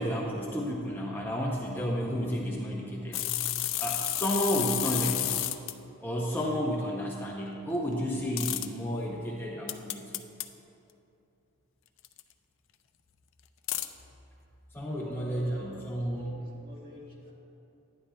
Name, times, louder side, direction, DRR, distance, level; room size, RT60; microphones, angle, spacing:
voice 1, 0.0-5.4 6.0-10.2 14.7-16.4, equal, 10° left, -3 dB, 0.5 m, -32 dB
sound 1, 3.1-5.7 8.4-8.7 9.7-10.5 12.0-12.2 13.7-13.9, left 14 dB, 60° left, 0.4 m, -31 dB
voice 2, 14.9-17.3, left 1 dB, 40° right, -5 dB, 1.6 m, -47 dB
11.0 x 9.8 x 2.2 m, 2.8 s
head